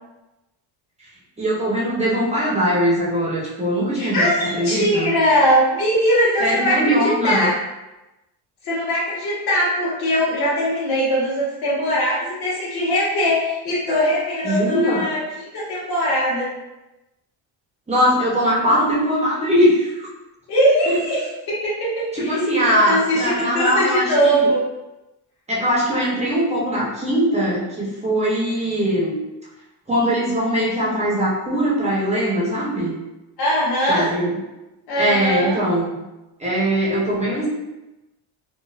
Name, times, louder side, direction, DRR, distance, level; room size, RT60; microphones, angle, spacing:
voice 1, 1.4-4.3 4.5-5.1 6.4-7.4 14.4-15.1 17.9-20.1 20.9-21.0 22.1-24.5 25.5-29.2 29.9-33.0 33.9-34.4 35.0-35.9 36.4-37.5, equal, 15° right, -5 dB, 0.6 m, -21 dB
voice 2, 3.9-7.5 8.6-16.5 20.5-21.2 21.5-22.3 22.6-24.6 33.4-34.1 34.9-35.6, equal, 55° left, -7 dB, 1.4 m, -20 dB
4.2 x 2.0 x 2.3 m, 1.0 s
cardioid pair, 155°, 44 cm